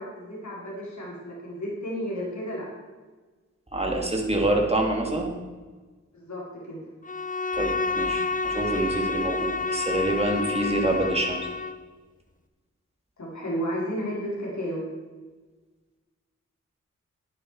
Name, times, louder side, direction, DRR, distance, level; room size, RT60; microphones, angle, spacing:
voice 1, 0.0-2.7 6.1-6.8 13.2-14.8, equal, 70° left, -5 dB, 4.4 m, -32 dB
voice 2, 3.7-5.3 7.5-11.4, right 1 dB, 20° right, 0 dB, 2.9 m, -26 dB
Bowed string instrument, 7.0-11.9, left 3 dB, 25° left, 0.7 m, -29 dB
11.0 x 10.0 x 4.8 m, 1.3 s
cardioid pair, 45°, 30 cm